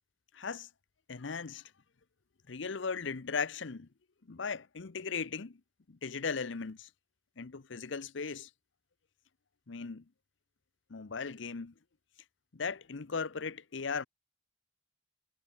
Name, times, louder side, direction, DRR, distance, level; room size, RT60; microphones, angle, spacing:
voice 1, 0.3-0.7 1.1-1.6 2.5-3.9 4.3-5.6 5.9-6.9 7.4-8.5 9.7-10.0 10.9-11.7 12.5-14.0, left 5 dB, 65° left, 0.8 m, -37 dB
head